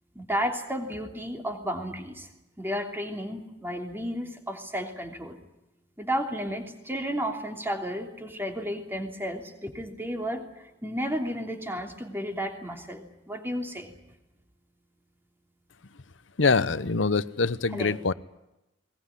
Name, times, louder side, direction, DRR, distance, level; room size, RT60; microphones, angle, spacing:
voice 1, 0.1-5.4 6.0-13.9 17.7-18.0, equal, 10° right, 4 dB, 3.0 m, -33 dB
voice 2, 16.4-18.1, left 4 dB, 85° left, 16 dB, 0.9 m, -24 dB
21.0 x 20.0 x 10.0 m, 0.94 s
head